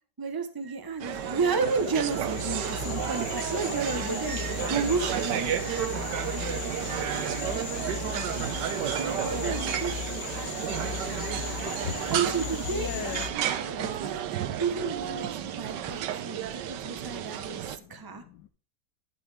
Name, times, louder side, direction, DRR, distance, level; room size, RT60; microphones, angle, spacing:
voice 1, 0.2-5.9 9.0-11.3 12.1-14.2 14.6-18.2, right 4 dB, 15° right, 7 dB, 0.8 m, -32 dB
sound 1, 1.0-17.8, right 10 dB, 75° right, 1.4 m, -32 dB
sound 2, 1.1-13.3, left 7 dB, 60° left, 1.6 m, -37 dB
voice 2, 11.5-12.0 12.7-13.3 13.8-13.9 14.2-14.6 15.7-16.1 16.5-16.6 16.9-18.5, left 9 dB, 80° left, 8 dB, 1.4 m, -42 dB
11.5 x 6.2 x 3.5 m, 0.42 s
omnidirectional pair, 1.9 m